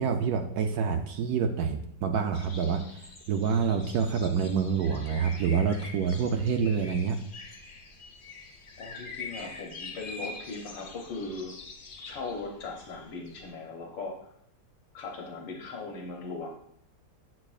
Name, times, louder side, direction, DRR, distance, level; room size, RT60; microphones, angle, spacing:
voice 1, 0.0-7.2, right 6 dB, 70° right, 5 dB, 1.0 m, -27 dB
sound 1, 2.3-13.5, left 3 dB, 50° left, 0.6 m, -45 dB
voice 2, 8.8-11.6 12.0-14.3 14.9-16.5, left 3 dB, 80° left, 1 dB, 1.6 m, -39 dB
8.7 x 6.2 x 2.4 m, 0.70 s
omnidirectional pair, 2.0 m